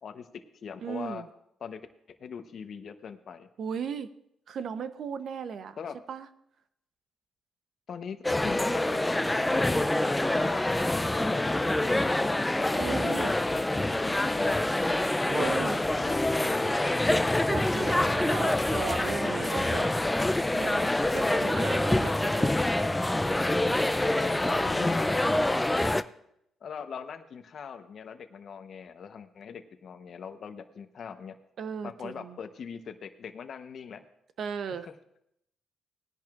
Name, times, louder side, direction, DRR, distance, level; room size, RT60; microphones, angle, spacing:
voice 1, 0.0-1.2 1.6-1.8 2.1-3.5 5.8-6.0 7.9-9.9 10.2-10.8 11.1-12.6 12.9-14.9 15.9-16.9 24.1-25.6 26.6-31.4 31.8-34.0 34.7-34.9, left 6 dB, 55° left, 8 dB, 0.9 m, -42 dB
voice 2, 0.8-1.3 3.6-4.1 4.5-5.8 6.1-6.3 12.8-13.3 15.3-15.8 17.5-20.0 20.5-22.5 31.6-32.4 34.4-34.9, right 7 dB, 60° right, 11 dB, 0.8 m, -36 dB
sound 1, 8.2-26.0, left 1 dB, 10° left, 0.4 m, -26 dB
19.5 x 10.5 x 2.5 m, 0.76 s
cardioid pair, 90°, 0 cm